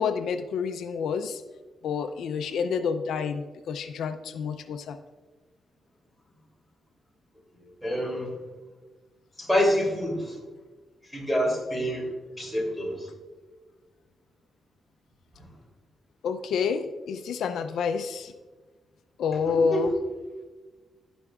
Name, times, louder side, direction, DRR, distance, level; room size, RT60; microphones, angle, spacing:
voice 1, 0.0-1.4 1.8-5.0 16.2-18.3 19.2-19.9, left 6 dB, 85° left, 9 dB, 0.5 m, -28 dB
voice 2, 7.8-8.3 9.4-10.4 11.1-12.1 12.4-13.1 15.4-15.5 19.5-19.8, equal, ahead, -1 dB, 2.8 m, -27 dB
18.0 x 6.0 x 2.4 m, 1.3 s
cardioid pair, 110°, 0 cm